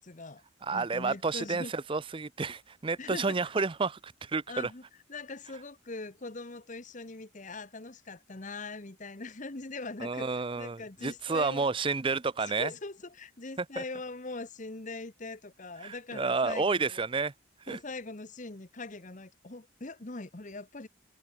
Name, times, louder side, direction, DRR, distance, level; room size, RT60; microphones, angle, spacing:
voice 1, 0.0-0.4 0.7-1.7 3.0-3.4 4.5-4.8 5.1-11.7 12.4-17.0 17.7-20.9, left 3 dB, 35° left, 1.1 m, -41 dB
voice 2, 0.6-4.7 10.0-12.7 13.8-13.9 15.8-17.3 17.7-17.8, right 4 dB, 25° right, 0.5 m, -30 dB
open air
head